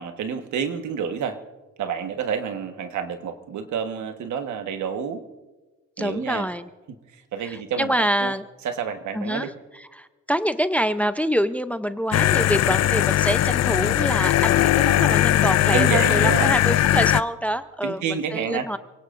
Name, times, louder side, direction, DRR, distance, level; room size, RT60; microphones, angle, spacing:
voice 1, 0.0-1.4 1.8-5.2 6.0-6.5 7.1-8.3 8.6-9.5 15.7-16.5 17.8-18.7, right 7 dB, 75° right, 7 dB, 1.4 m, -29 dB
voice 2, 6.0-6.7 7.4-8.4 9.1-9.5 9.9-18.8, equal, 5° left, 12 dB, 0.6 m, -26 dB
sound 1, 12.1-17.2, left 13 dB, 60° left, 0.5 m, -19 dB
28.5 x 17.5 x 2.6 m, 1.2 s
cardioid pair, 90°, 30 cm